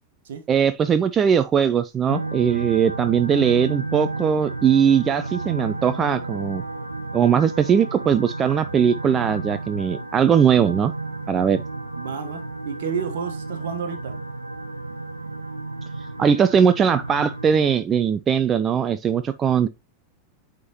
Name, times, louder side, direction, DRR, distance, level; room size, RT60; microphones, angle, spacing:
voice 1, 0.5-6.6 7.1-10.9 11.3-11.6 16.2-19.7, right 7 dB, 25° right, 0.3 m, -20 dB
sound 1, 2.1-17.8, right 3 dB, 80° right, 0.6 m, -32 dB
voice 2, 12.0-12.4 12.6-14.1, right 6 dB, 60° right, 1.2 m, -30 dB
9.3 x 3.6 x 2.9 m
figure-of-eight pair, 90°, 0 cm